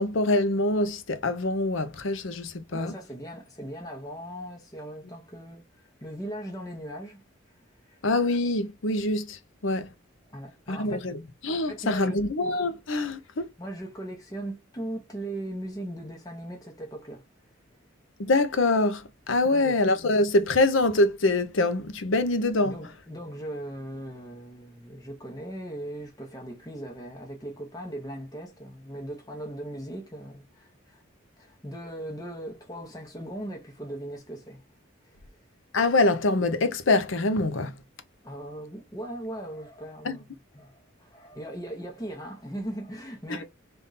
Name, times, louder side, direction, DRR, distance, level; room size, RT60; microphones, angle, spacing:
voice 1, 0.0-2.9 8.0-9.9 10.7-11.2 11.4-13.5 18.2-22.7 35.7-37.7 40.0-40.2 43.3-43.4, left 2 dB, 70° left, 0.7 m, -25 dB
voice 2, 2.7-7.2 7.8-8.0 10.3-11.0 11.6-12.2 13.6-17.2 19.4-19.8 22.6-31.0 31.4-34.6 35.0-35.2 38.2-40.3 40.5-43.4, right 1 dB, 20° left, 0.9 m, -39 dB
3.7 x 2.6 x 4.0 m
head